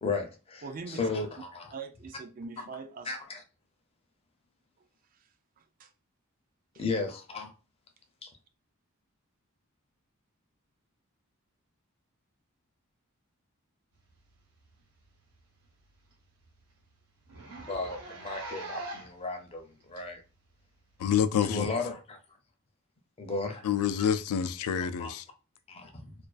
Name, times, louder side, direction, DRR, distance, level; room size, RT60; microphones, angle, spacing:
voice 1, 0.0-1.7 3.1-3.4 6.8-7.5 8.2-8.3 17.7-20.2 21.4-22.2 23.2-23.6 24.0-24.1 25.0-25.1 25.7-26.1, left 3 dB, 25° left, 0.5 m, -34 dB
voice 2, 0.6-1.0 1.7-3.2 5.6-5.9 6.7-6.8, right 4 dB, 40° right, 0.3 m, -42 dB
Zipper (clothing), 14.6-14.8 15.2-15.3 15.6-15.7 16.1-16.2 16.4-16.6 17.2-19.2 20.0-20.1 21.1-21.2, right 2 dB, 85° right, 0.9 m, -41 dB
voice 3, 21.0-21.7 23.6-25.2, left 8 dB, 85° left, 0.3 m, -27 dB
2.4 x 2.2 x 2.3 m
head